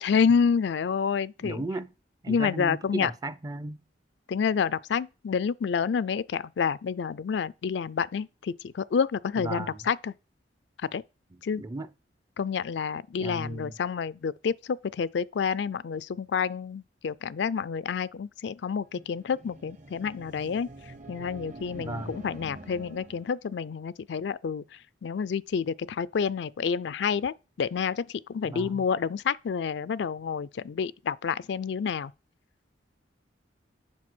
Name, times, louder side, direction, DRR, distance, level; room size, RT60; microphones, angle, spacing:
voice 1, 0.0-1.6 2.3-3.1 4.3-10.1 10.9-11.0 11.4-11.6 12.4-20.7 21.1-24.6 25.0-28.0 28.3-32.1, left 6 dB, 70° left, 0.4 m, -28 dB
voice 2, 1.4-1.9 2.2-3.8 9.4-9.8 11.3-11.9 13.2-13.7 21.8-22.2 28.4-28.9, right 2 dB, 20° right, 0.4 m, -35 dB
sound 1, 18.8-23.5, right 2 dB, 40° right, 0.9 m, -46 dB
7.4 x 6.1 x 6.1 m
head